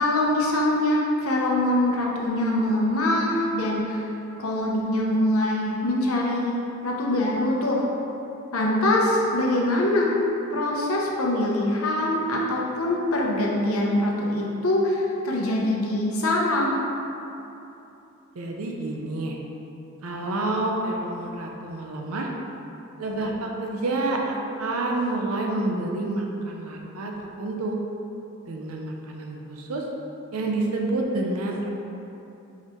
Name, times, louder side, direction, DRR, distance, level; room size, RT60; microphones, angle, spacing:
voice 1, 0.0-4.0 4.4-7.8 8.5-10.1 10.5-16.8, left 1 dB, 75° left, -2 dB, 0.7 m, -23 dB
voice 2, 18.3-19.4 20.0-22.3 23.0-27.1 27.4-27.8 28.5-29.8 30.3-31.7, right 2 dB, 80° right, 0 dB, 0.6 m, -28 dB
4.6 x 3.5 x 2.9 m, 2.9 s
head